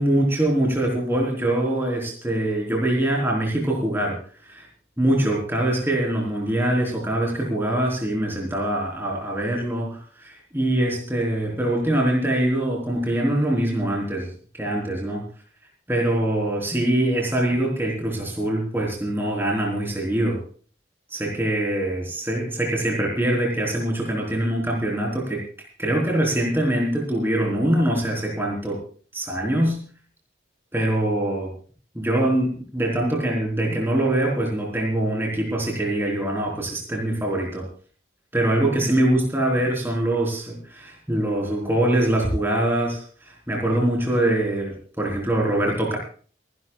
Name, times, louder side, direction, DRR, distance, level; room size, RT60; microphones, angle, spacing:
voice 1, 0.0-4.2 4.5-4.7 5.0-14.3 14.6-15.2 15.9-20.4 21.1-25.4 25.8-28.8 29.1-29.8 30.7-31.5 31.9-37.6 38.3-46.0, right 1 dB, 10° right, -1 dB, 4.0 m, -23 dB
28.5 x 11.5 x 2.4 m, 0.42 s
head